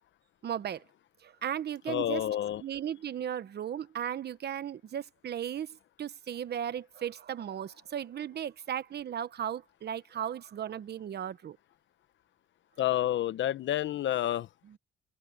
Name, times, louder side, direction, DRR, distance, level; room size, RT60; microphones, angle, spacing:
voice 1, 0.4-0.8 1.2-2.2 2.6-11.6, right 9 dB, 55° right, 1.2 m, -36 dB
voice 2, 1.9-2.6 12.8-14.5, left 12 dB, 70° left, 1.0 m, -29 dB
open air
cardioid pair, 90°, 20 cm